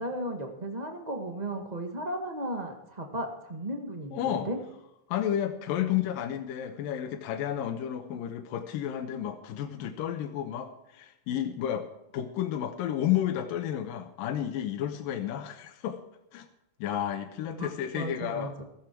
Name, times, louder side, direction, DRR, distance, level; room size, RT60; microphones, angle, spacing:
voice 1, 0.0-4.6 5.8-5.9 17.6-17.7 17.9-18.6, right 1 dB, 55° right, 4 dB, 0.4 m, -35 dB
voice 2, 4.1-4.5 5.1-11.9 12.1-16.0 16.3-16.5 16.8-18.5, left 10 dB, 75° left, 4 dB, 2.7 m, -31 dB
15.0 x 14.5 x 4.6 m, 0.85 s
omnidirectional pair, 4.1 m